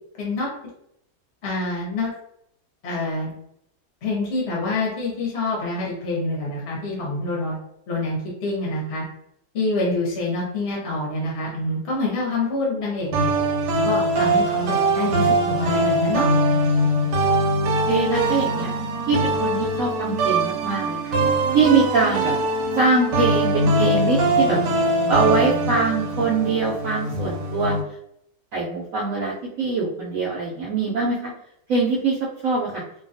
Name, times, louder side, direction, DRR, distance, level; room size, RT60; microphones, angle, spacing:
voice 1, 0.2-0.5 1.4-2.1 2.8-3.3 4.0-7.5 7.9-9.0 9.5-13.3 13.8-16.3, left 2 dB, 50° left, -4 dB, 0.9 m, -26 dB
sound 1, 13.1-27.8, right 1 dB, 85° right, 1.2 m, -22 dB
voice 2, 17.8-18.7 19.1-21.2 21.5-22.3 22.7-24.6 25.1-27.8 28.5-31.3 31.7-32.2 32.4-32.8, right 4 dB, 70° right, -4 dB, 0.8 m, -22 dB
2.7 x 2.2 x 2.6 m, 0.74 s
omnidirectional pair, 1.8 m